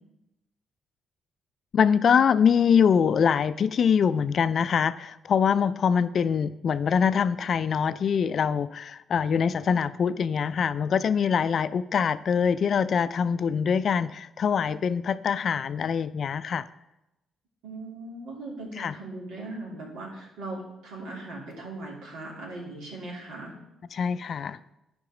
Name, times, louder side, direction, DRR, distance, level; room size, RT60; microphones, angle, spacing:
voice 1, 1.7-16.6 18.8-18.9 23.9-24.6, left 7 dB, 55° left, 14 dB, 0.4 m, -24 dB
voice 2, 17.6-23.5, right 2 dB, 85° right, -3 dB, 2.9 m, -39 dB
10.5 x 5.2 x 4.9 m, 0.90 s
cardioid pair, 90°, 0 cm